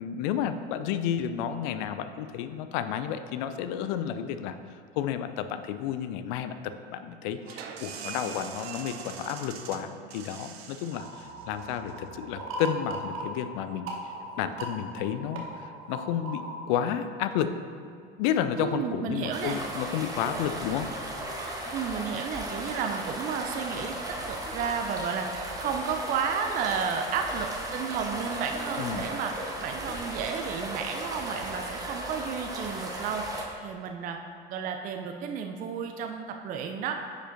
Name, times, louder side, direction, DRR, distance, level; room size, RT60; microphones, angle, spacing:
voice 1, 0.0-4.6 5.0-13.9 14.4-16.4 16.7-17.5 18.2-20.9 28.8-29.1, left 9 dB, 50° left, 10 dB, 0.5 m, -31 dB
sound 1, 7.4-12.9, right 6 dB, 75° right, 0.6 m, -43 dB
sound 2, 10.9-16.6, right 1 dB, 45° right, 1.1 m, -39 dB
voice 2, 18.6-19.6 21.7-34.2 34.5-36.9, right 6 dB, 25° right, 4 dB, 0.4 m, -32 dB
sound 3, 19.3-33.4, right 1 dB, 10° right, 1.1 m, -36 dB
9.7 x 5.1 x 2.7 m, 2.4 s
figure-of-eight pair, 75°, 31 cm